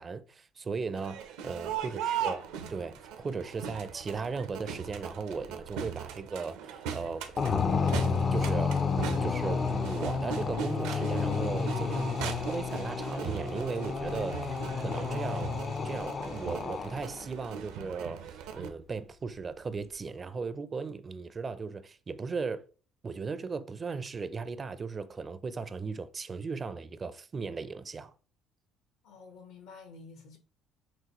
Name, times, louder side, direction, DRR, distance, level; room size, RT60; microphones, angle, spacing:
voice 1, 0.0-2.4 2.7-7.3 8.3-8.8 9.2-15.5 15.8-22.6 23.0-28.1, right 4 dB, 35° right, 0.4 m, -37 dB
Crowd, 0.9-18.7, right 8 dB, 85° right, 0.6 m, -39 dB
voice 2, 2.0-2.5 29.0-30.4, left 4 dB, 75° left, 1.2 m, -51 dB
sound 1, 7.4-17.3, left 5 dB, 40° left, 0.4 m, -31 dB
6.0 x 2.3 x 3.0 m
supercardioid pair, 80°, 0 cm